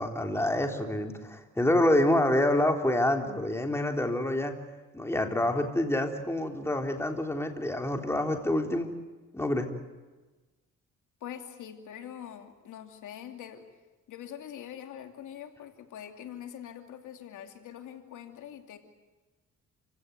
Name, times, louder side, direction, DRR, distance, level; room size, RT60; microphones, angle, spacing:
voice 1, 0.0-4.6 4.9-8.9 9.3-9.7, left 1 dB, 10° left, 4 dB, 3.7 m, -27 dB
voice 2, 11.2-13.7 14.1-18.8, left 10 dB, 80° left, 5 dB, 2.8 m, -44 dB
28.5 x 17.0 x 9.4 m, 1.2 s
cardioid pair, 90°, 30 cm